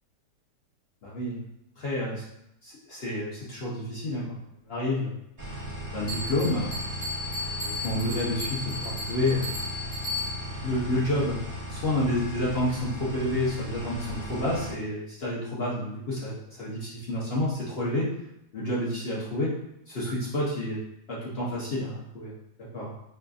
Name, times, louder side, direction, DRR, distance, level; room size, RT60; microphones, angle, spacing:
voice 1, 1.0-1.4 1.8-2.2 2.6-4.4 4.6-5.1 5.7-6.7 7.5-9.5 10.6-11.4 11.7-18.0 18.5-19.5 19.9-20.8 21.1-22.9, left 1 dB, 50° left, -6 dB, 0.8 m, -29 dB
sound 1, 5.4-14.7, right 1 dB, 25° right, 0.9 m, -37 dB
Bell, 6.1-10.6, left 2 dB, 70° left, 1.6 m, -35 dB
4.9 x 2.5 x 2.3 m, 0.80 s
omnidirectional pair, 1.8 m